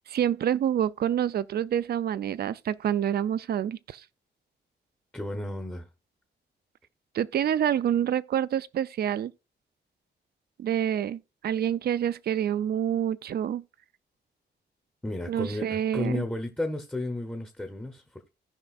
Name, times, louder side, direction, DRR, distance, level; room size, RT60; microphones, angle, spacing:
voice 1, 0.1-4.0 7.1-9.3 10.6-13.6 15.3-16.2, right 10 dB, 60° right, 0.4 m, -27 dB
voice 2, 5.1-5.9 15.0-18.3, left 2 dB, 5° left, 0.8 m, -33 dB
16.0 x 5.3 x 2.4 m
wide cardioid pair, 145°, 19 cm